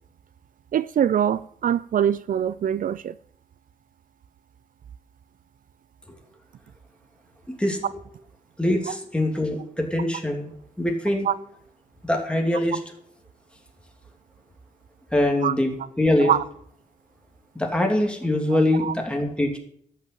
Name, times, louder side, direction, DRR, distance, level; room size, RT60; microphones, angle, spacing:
voice 1, 0.7-3.2 11.2-11.3 15.4-15.5 16.2-16.4 18.5-18.9, right 9 dB, 70° right, 0.4 m, -23 dB
voice 2, 8.6-10.5 10.8-11.3 12.0-12.8 15.1-15.7 16.0-16.3 17.5-19.6, left 1 dB, 5° left, 2.8 m, -23 dB
13.5 x 5.9 x 8.5 m
wide cardioid pair, 100°, 14 cm